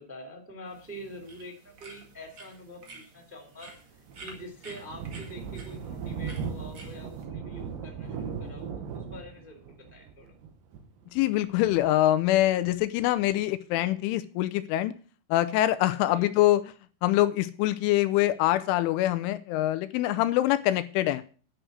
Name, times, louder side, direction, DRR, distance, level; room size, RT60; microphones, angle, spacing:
voice 1, 0.0-3.7 4.2-10.3 16.0-16.3, equal, 5° right, 2 dB, 2.0 m, -45 dB
sound 1, 0.7-7.2, right 3 dB, 85° right, 1.0 m, -51 dB
Thunder, 3.6-12.8, right 6 dB, 65° right, 2.3 m, -38 dB
voice 2, 11.1-15.0 15.3-16.7 17.0-21.2, left 14 dB, 85° left, 13 dB, 3.0 m, -24 dB
10.0 x 6.3 x 8.0 m, 0.40 s
omnidirectional pair, 5.6 m